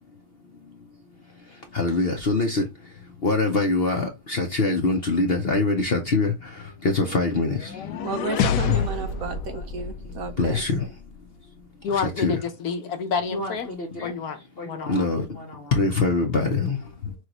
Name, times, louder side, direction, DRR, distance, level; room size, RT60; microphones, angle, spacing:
voice 1, 1.5-8.0 8.4-9.4 10.0-11.0 11.9-12.5 13.3-14.2 14.6-17.1, left 3 dB, 50° left, 0.7 m, -25 dB
sound 1, 7.5-10.7, left 7 dB, 85° left, 1.2 m, -27 dB
voice 2, 8.0-10.6, right 4 dB, 65° right, 1.0 m, -32 dB
voice 3, 11.8-13.7 14.0-15.1, left 5 dB, 65° left, 1.2 m, -29 dB
6.2 x 2.5 x 3.0 m
omnidirectional pair, 1.8 m